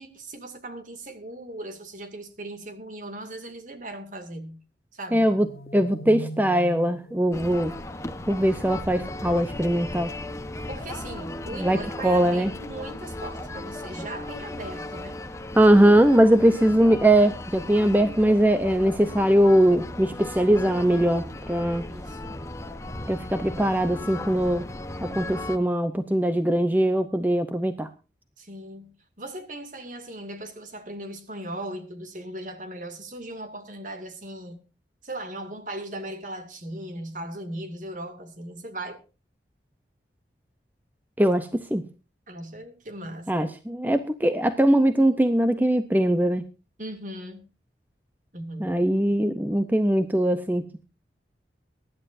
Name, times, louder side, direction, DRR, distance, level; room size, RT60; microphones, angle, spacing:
voice 1, 0.0-4.6 4.9-5.3 10.7-15.2 21.9-22.4 28.4-34.6 35.0-39.0 42.3-43.5 46.8-47.5 48.3-48.8, right 1 dB, 45° right, 2.3 m, -38 dB
voice 2, 5.1-5.5 5.7-7.7 8.3-10.1 11.5-12.5 15.6-21.8 23.1-24.7 25.0-27.9 41.2-41.8 43.3-46.4 48.6-50.8, right 1 dB, 10° right, 0.7 m, -21 dB
sound 1, 5.3-8.7, right 1 dB, 55° left, 1.3 m, -40 dB
sound 2, 7.3-25.6, left 1 dB, 15° left, 1.0 m, -36 dB
23.5 x 11.5 x 2.6 m
head